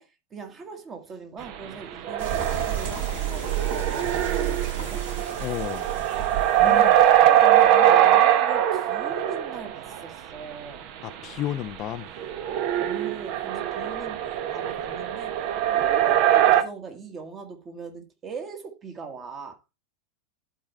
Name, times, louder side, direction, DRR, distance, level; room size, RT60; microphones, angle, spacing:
voice 1, 0.0-5.1 6.6-10.9 12.8-15.4 15.7-19.6, right 5 dB, 25° right, 1.6 m, -40 dB
sound 1, 1.4-1.5 1.9-10.0 12.2-16.6, right 11 dB, 40° right, 0.8 m, -22 dB
sound 2, 2.2-7.7, right 9 dB, 60° right, 4.3 m, -31 dB
voice 2, 5.4-5.9 6.6-6.9 11.0-12.1, left 12 dB, 35° left, 0.4 m, -32 dB
11.5 x 4.5 x 3.3 m
figure-of-eight pair, 90°, 0 cm